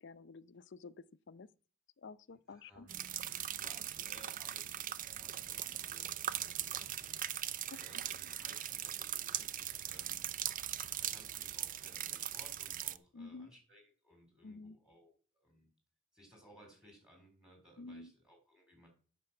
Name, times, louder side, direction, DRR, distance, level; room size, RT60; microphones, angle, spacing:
voice 1, 0.0-1.5 2.0-2.9 7.7-7.8 13.1-13.5 14.4-14.8 17.8-18.1, left 3 dB, 60° left, 0.5 m, -50 dB
voice 2, 2.5-3.0 3.5-10.3 10.6-15.1 15.4-15.7 16.1-18.9, equal, 5° right, 4.1 m, -61 dB
sound 1, 2.9-13.0, right 11 dB, 40° right, 0.5 m, -40 dB
9.6 x 6.8 x 5.9 m
head